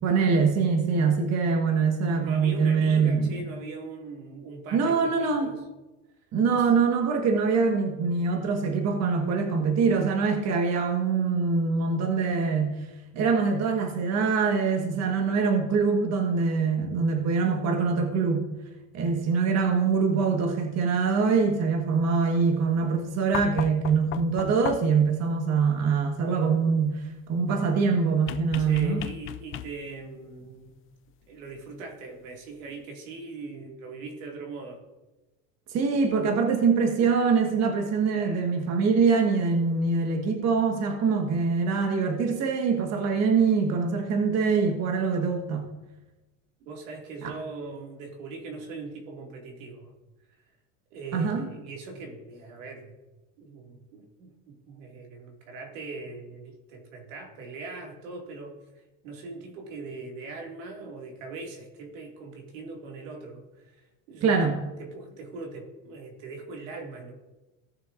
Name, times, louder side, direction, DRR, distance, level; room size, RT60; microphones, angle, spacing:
voice 1, 0.0-3.3 4.7-5.5 6.3-12.8 13.1-18.5 18.9-29.1 35.7-45.6 47.2-47.3 51.1-51.4 64.2-64.6, right 5 dB, 45° right, 3 dB, 1.5 m, -24 dB
voice 2, 2.2-5.6 6.5-6.7 28.6-30.8 31.3-34.8 38.1-38.6 46.7-49.9 50.9-52.9 53.4-58.6 59.0-63.8 64.1-64.5 64.8-67.1, right 3 dB, 85° right, 1 dB, 2.3 m, -41 dB
sound 1, 23.3-25.1 28.3-30.0 31.6-31.7, left 13 dB, 35° left, 0.4 m, -37 dB
17.0 x 6.6 x 2.6 m, 1.1 s
supercardioid pair, 130°, 38 cm